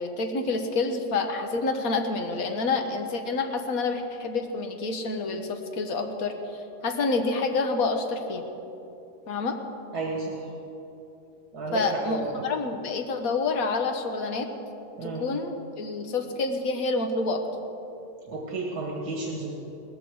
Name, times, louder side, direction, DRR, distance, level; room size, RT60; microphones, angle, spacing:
voice 1, 0.0-6.3 6.8-8.5 9.3-9.6 11.7-12.2 12.4-14.5 15.0-17.4, left 3 dB, 65° left, 5 dB, 1.6 m, -28 dB
voice 2, 9.9-10.5 11.5-12.4 15.0-15.2 18.3-19.5, right 3 dB, 85° right, -2 dB, 2.2 m, -32 dB
18.0 x 14.5 x 4.8 m, 2.9 s
omnidirectional pair, 1.6 m